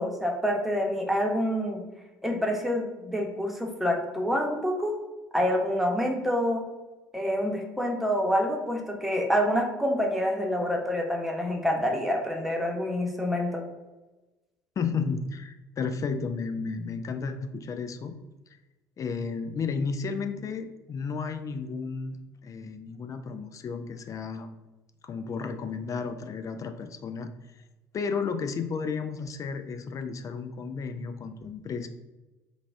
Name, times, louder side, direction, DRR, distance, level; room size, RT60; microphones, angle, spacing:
voice 1, 0.0-1.8 2.2-4.9 5.3-6.6 7.1-13.6, equal, ahead, 0 dB, 1.0 m, -27 dB
voice 2, 14.8-18.2 19.0-24.5 25.0-27.6 27.9-31.9, left 5 dB, 35° left, 7 dB, 0.5 m, -33 dB
4.0 x 2.3 x 3.4 m, 1.1 s
figure-of-eight pair, 55°, 10 cm